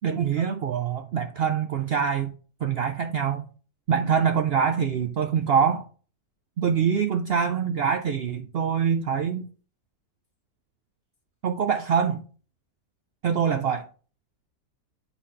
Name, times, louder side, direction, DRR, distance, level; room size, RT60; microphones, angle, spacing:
voice 1, 0.0-2.3 2.6-3.4 3.9-5.9 6.6-9.5 11.4-12.2 13.2-13.9, right 7 dB, 85° right, 0.5 m, -24 dB
9.7 x 4.0 x 3.8 m
omnidirectional pair, 1.6 m